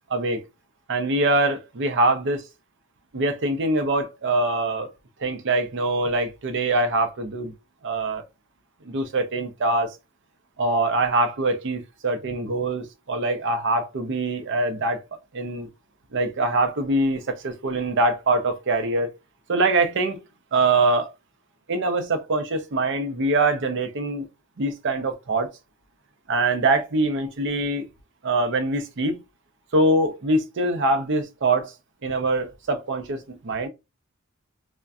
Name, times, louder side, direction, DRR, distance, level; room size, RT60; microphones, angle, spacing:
voice 1, 0.1-0.4 0.9-2.4 3.1-4.9 5.2-7.5 7.8-8.2 8.8-10.0 10.6-15.0 15.3-15.7 16.1-19.1 19.5-20.2 20.5-21.1 21.7-24.3 24.6-25.5 26.3-27.9 28.2-29.2 29.7-31.7 32.0-33.7, right 2 dB, 55° right, 0.6 m, -23 dB
2.5 x 2.1 x 2.3 m
head